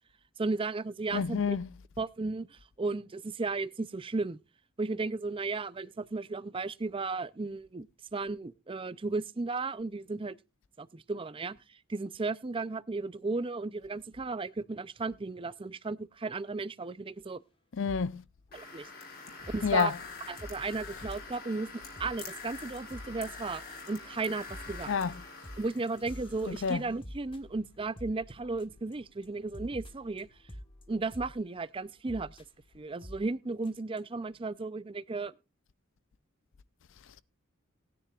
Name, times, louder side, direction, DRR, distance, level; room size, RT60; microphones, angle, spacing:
voice 1, 0.4-1.4 2.0-4.4 4.8-10.4 10.8-11.6 11.9-17.4 18.5-18.9 19.5-19.9 20.3-21.7 22.0-24.9 25.6-30.3 30.9-32.4 32.7-35.3, right 3 dB, 25° right, 0.5 m, -35 dB
voice 2, 1.1-1.7 17.8-18.2 19.6-19.9 24.9-25.1 26.5-26.8, left 6 dB, 60° left, 0.5 m, -28 dB
sound 1, 17.9-18.1 18.5-18.7 19.4-20.6 21.0-21.4 21.7-21.8 22.0-22.3 22.6-22.7 22.9-23.3 23.5-23.9 24.2-28.9 29.2-29.3 29.5-31.4 32.1-32.4 33.0-33.3 33.6-33.7 34.0-34.1, equal, 25° left, 1.4 m, -47 dB
sound 2, 18.5-26.7, left 4 dB, 45° left, 3.5 m, -46 dB
18.5 x 10.0 x 2.4 m
head